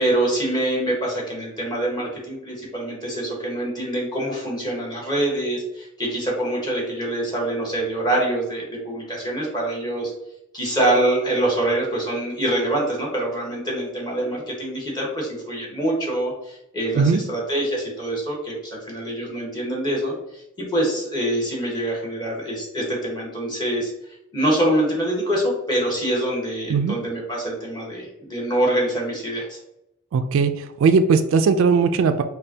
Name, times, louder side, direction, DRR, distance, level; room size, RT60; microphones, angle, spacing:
voice 1, 0.0-10.1 10.5-23.9 24.3-29.6, right 1 dB, 20° left, -3 dB, 1.2 m, -25 dB
voice 2, 30.1-32.2, right 5 dB, 60° right, 9 dB, 0.3 m, -18 dB
5.2 x 2.2 x 2.7 m, 0.85 s
head